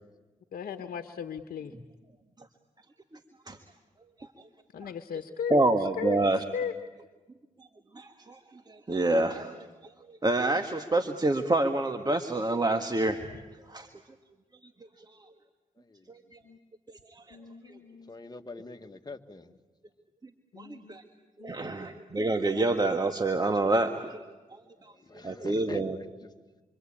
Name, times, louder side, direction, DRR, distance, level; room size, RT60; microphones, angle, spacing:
voice 1, 0.5-1.7 4.7-5.6 6.0-6.2 6.5-6.8 16.4-16.6 17.3-18.2 20.5-21.0 21.4-21.8, left 7 dB, 70° left, 8 dB, 1.2 m, -37 dB
voice 2, 5.5-6.4 8.0-8.4 8.7-9.5 10.2-13.2 13.7-13.9 17.3-17.4 17.6-17.7 20.6-21.0 21.4-24.2 25.2-26.0, right 2 dB, 25° right, 7 dB, 1.7 m, -27 dB
voice 3, 18.1-19.5 25.1-26.3, left 3 dB, 25° left, 7 dB, 1.9 m, -44 dB
27.5 x 24.5 x 8.9 m, 1.3 s
supercardioid pair, 45°, 15 cm